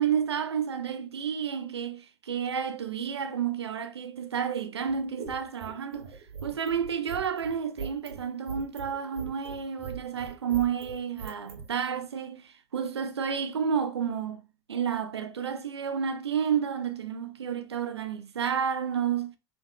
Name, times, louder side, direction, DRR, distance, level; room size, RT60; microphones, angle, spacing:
voice 1, 0.0-14.4 14.7-19.3, right 7 dB, 85° right, 0.6 m, -31 dB
sound 1, 4.8-11.7, right 5 dB, 65° right, 1.4 m, -41 dB
3.7 x 3.0 x 3.5 m
hypercardioid pair, 85°, 13 cm